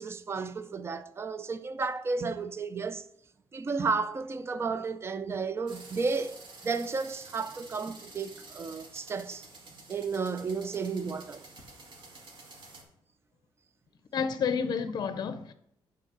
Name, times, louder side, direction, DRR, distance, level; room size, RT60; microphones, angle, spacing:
voice 1, 0.0-3.0 3.5-9.5 9.9-11.4, right 4 dB, 30° right, 0.5 m, -33 dB
sound 1, 5.7-12.8, right 3 dB, 65° right, 1.9 m, -50 dB
voice 2, 14.1-15.5, left 6 dB, 50° left, 0.6 m, -30 dB
9.1 x 3.9 x 6.6 m
cardioid pair, 145°, 9 cm